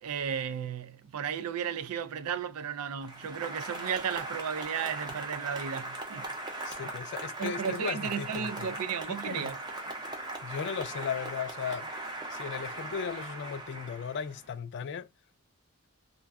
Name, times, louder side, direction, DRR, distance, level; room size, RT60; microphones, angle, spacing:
voice 1, 0.0-6.3 7.4-9.6, right 7 dB, 80° right, 0.4 m, -34 dB
Applause, 3.0-14.5, right 2 dB, 20° right, 0.6 m, -39 dB
voice 2, 6.6-8.7 9.1-9.5 10.4-11.9 12.3-15.1, left 6 dB, 55° left, 0.3 m, -36 dB
2.4 x 2.2 x 3.3 m
head